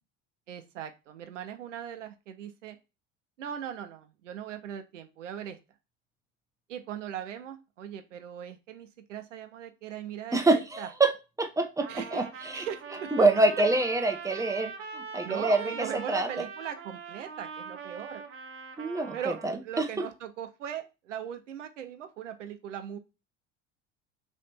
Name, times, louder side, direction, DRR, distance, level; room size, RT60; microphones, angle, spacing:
voice 1, 0.5-2.8 3.4-5.6 6.7-10.4 10.8-10.9 11.9-13.3 14.3-14.5 15.2-18.2 19.1-19.4 19.6-23.0, right 9 dB, 90° right, 8 dB, 0.6 m, -39 dB
voice 2, 10.3-11.1 11.4-12.6 13.1-15.6 15.9-16.3 18.8-19.9, right 2 dB, 10° right, 5 dB, 0.9 m, -26 dB
Trumpet, 11.8-19.5, right 5 dB, 35° right, 0.8 m, -42 dB
3.2 x 3.2 x 4.1 m, 0.28 s
hypercardioid pair, 75°, 36 cm